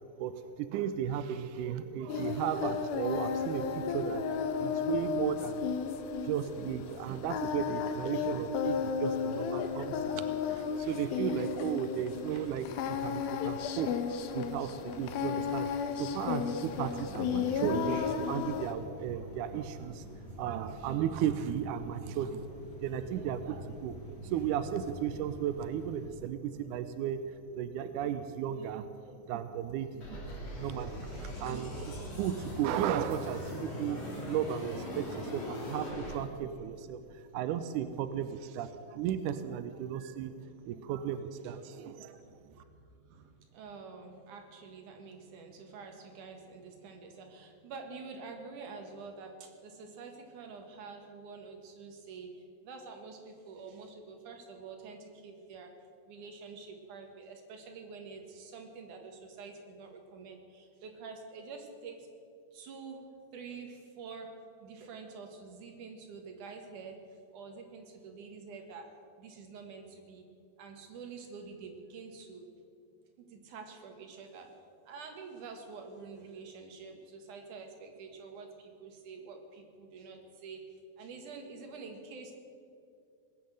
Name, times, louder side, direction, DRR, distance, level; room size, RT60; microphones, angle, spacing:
voice 1, 0.2-4.2 4.6-5.7 6.2-15.7 16.0-20.0 20.3-40.3 40.7-42.2, right 9 dB, 80° right, 10 dB, 1.8 m, -35 dB
Singing, 2.1-18.7, left 6 dB, 85° left, 2.7 m, -34 dB
sound 1, 16.7-26.1, equal, 65° left, 3.2 m, -47 dB
sound 2, 30.0-36.1, left 1 dB, 45° left, 4.4 m, -40 dB
voice 2, 40.4-40.9 41.4-41.7 42.4-55.7 56.1-62.1 62.5-64.3 64.6-67.0 67.3-70.2 70.6-72.5 73.2-74.5 74.9-80.6 81.0-82.3, right 4 dB, 60° right, 3 dB, 3.0 m, -47 dB
20.0 x 8.9 x 7.8 m, 2.4 s
omnidirectional pair, 4.2 m